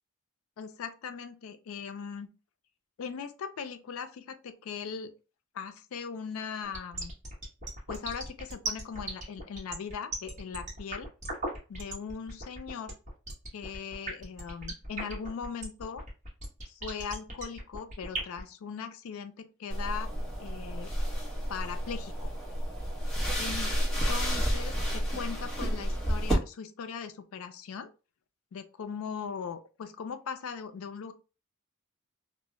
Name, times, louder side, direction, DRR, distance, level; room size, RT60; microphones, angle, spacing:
voice 1, 0.6-2.3 3.0-5.1 5.5-7.1 7.9-11.1 11.7-13.0 13.5-16.1 16.7-20.1 20.4-20.9 21.5-22.3 23.4-23.7 24.1-27.9 28.5-31.1, left 6 dB, 75° left, 0.4 m, -39 dB
sound 1, 6.6-18.4, right 2 dB, 35° right, 0.8 m, -37 dB
sound 2, 19.7-26.3, equal, ahead, 0.7 m, -31 dB
2.1 x 2.0 x 3.6 m
head